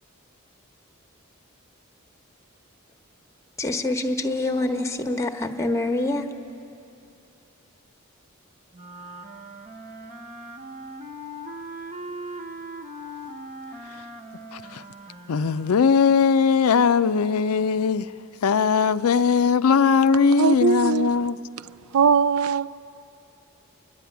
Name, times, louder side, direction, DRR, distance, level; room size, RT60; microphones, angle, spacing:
voice 1, 3.6-6.3, left 2 dB, 15° left, 1.0 m, -25 dB
sound 1, 8.7-16.1, right 1 dB, 35° right, 1.0 m, -40 dB
voice 2, 14.5-14.8 15.3-18.1 18.4-21.4, left 6 dB, 90° left, 0.5 m, -20 dB
voice 3, 20.4-21.1 21.9-22.7, right 6 dB, 85° right, 0.4 m, -20 dB
29.5 x 11.5 x 9.3 m
head